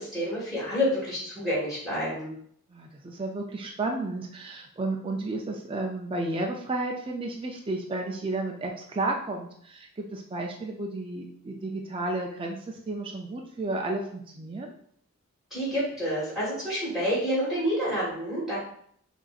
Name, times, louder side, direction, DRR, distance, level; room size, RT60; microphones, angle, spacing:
voice 1, 0.0-2.3 15.5-18.6, equal, ahead, -8 dB, 1.6 m, -28 dB
voice 2, 2.7-14.7, right 2 dB, 25° right, 1 dB, 0.4 m, -32 dB
6.7 x 2.6 x 2.4 m, 0.63 s
head